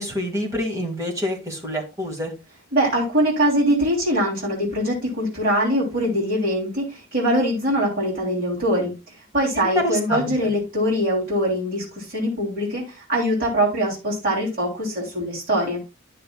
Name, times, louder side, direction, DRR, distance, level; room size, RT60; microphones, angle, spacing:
voice 1, 0.0-2.3 9.5-10.3, equal, 15° right, -1 dB, 2.0 m, -26 dB
voice 2, 2.7-8.9 9.3-15.8, equal, 45° right, -6 dB, 3.3 m, -22 dB
11.5 x 6.6 x 2.3 m, 0.28 s
head